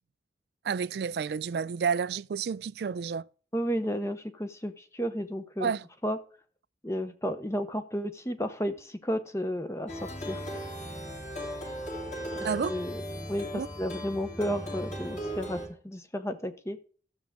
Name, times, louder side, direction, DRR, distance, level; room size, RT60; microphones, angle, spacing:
voice 1, 0.6-3.2 5.6-5.8 12.4-12.7 13.5-13.7, right 6 dB, 65° right, 0.3 m, -30 dB
voice 2, 3.5-5.7 6.0-6.2 6.8-10.5 12.7-13.0 13.3-16.8, equal, 15° left, 0.7 m, -32 dB
Plucked string instrument, 9.9-15.7, equal, 40° left, 3.0 m, -37 dB
12.5 x 7.2 x 3.6 m
head